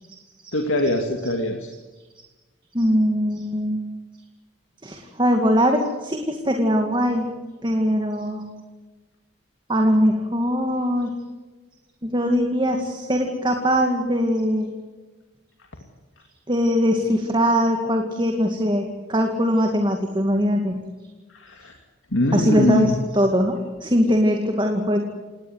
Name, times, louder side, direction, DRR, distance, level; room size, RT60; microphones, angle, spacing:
voice 1, 0.5-1.7 21.4-21.7 22.1-23.0, left 1 dB, 85° left, 3 dB, 2.5 m, -22 dB
voice 2, 2.7-3.8 4.8-7.3 7.6-8.4 9.7-11.1 12.0-14.7 16.5-18.8 19.1-20.8 22.3-25.0, equal, 25° right, 4 dB, 2.3 m, -21 dB
29.0 x 18.5 x 8.1 m, 1.2 s
head